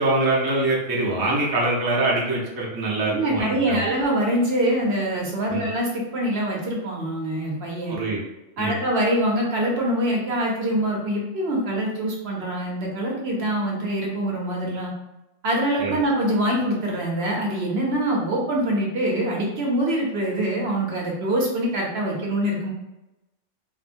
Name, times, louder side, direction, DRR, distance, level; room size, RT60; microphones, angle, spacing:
voice 1, 0.0-3.9 5.5-5.6 7.9-8.2 8.6-8.7 15.8-16.0, right 2 dB, 25° right, -4 dB, 0.5 m, -24 dB
voice 2, 3.1-7.9 8.6-14.9 15.4-22.7, right 1 dB, 60° right, -2 dB, 0.9 m, -24 dB
3.5 x 2.0 x 2.6 m, 0.96 s
omnidirectional pair, 1.3 m